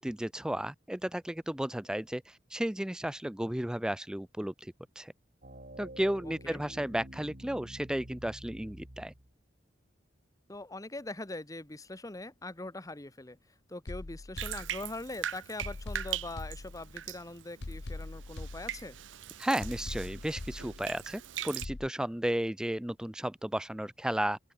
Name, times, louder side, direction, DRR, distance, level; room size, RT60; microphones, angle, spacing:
voice 1, 0.0-5.1 5.8-9.1 19.4-24.4, right 1 dB, 5° right, 0.3 m, -34 dB
sound 1, 5.4-9.3, right 1 dB, 50° right, 4.8 m, -48 dB
voice 2, 6.2-6.6 10.5-13.4 13.7-19.0, left 2 dB, 20° left, 1.1 m, -42 dB
sound 2, 13.9-15.2 15.6-17.2 17.6-19.2 19.6-21.2 21.6-21.9, left 2 dB, 65° left, 1.0 m, -43 dB
Bathtub (filling or washing), 14.4-21.7, right 11 dB, 90° right, 0.6 m, -41 dB
open air
head